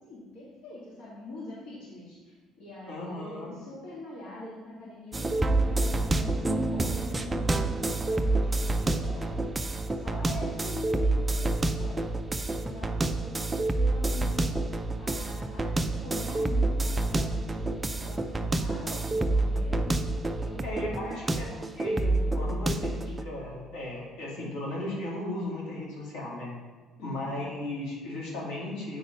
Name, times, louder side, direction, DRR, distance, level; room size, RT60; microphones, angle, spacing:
voice 1, 0.0-12.1 12.6-21.2 27.0-27.6, left 2 dB, 75° left, -5 dB, 2.2 m, -43 dB
voice 2, 2.9-3.6 20.6-21.5 21.7-26.6 27.0-29.0, left 1 dB, 90° left, -4 dB, 2.4 m, -36 dB
sound 1, 5.1-23.2, right 2 dB, 10° right, 0.4 m, -28 dB
8.1 x 4.9 x 5.2 m, 1.4 s
cardioid pair, 160°, 0 cm